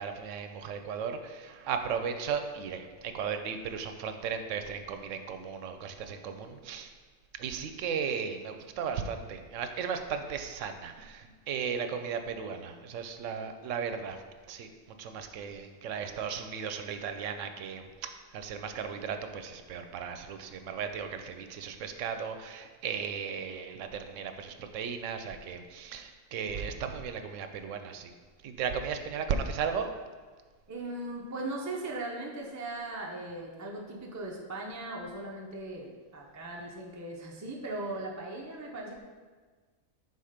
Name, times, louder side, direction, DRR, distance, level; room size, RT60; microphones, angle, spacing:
voice 1, 0.0-6.9 7.4-14.2 14.5-14.7 15.0-28.1 28.4-29.9, right 6 dB, 75° right, 7 dB, 0.9 m, -36 dB
voice 2, 30.7-39.0, right 2 dB, 20° right, -2 dB, 0.4 m, -38 dB
5.6 x 3.9 x 4.9 m, 1.4 s
omnidirectional pair, 1.3 m